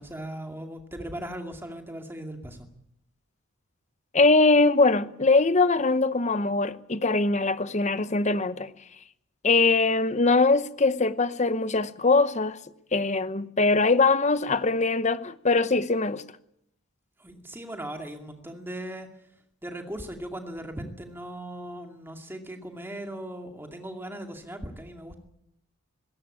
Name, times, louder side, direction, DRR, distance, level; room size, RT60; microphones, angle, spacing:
voice 1, 0.0-2.7 17.2-19.1 19.6-25.3, right 1 dB, 10° right, 2.4 m, -38 dB
voice 2, 4.1-8.7 9.4-12.6 12.9-16.2, left 3 dB, 30° left, 0.8 m, -22 dB
20.0 x 16.5 x 8.7 m
head